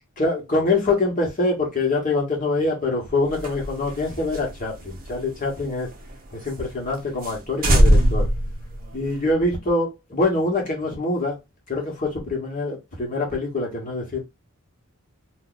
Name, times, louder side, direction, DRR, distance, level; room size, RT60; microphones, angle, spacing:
voice 1, 0.2-5.9 6.3-8.3 8.9-11.3 11.7-14.2, left 2 dB, 35° left, 1.1 m, -24 dB
sound 1, 3.3-6.1 6.4-6.5 6.9-7.0 7.2-7.4 7.6-9.3, equal, 40° right, 0.7 m, -21 dB
2.7 x 2.3 x 3.9 m
head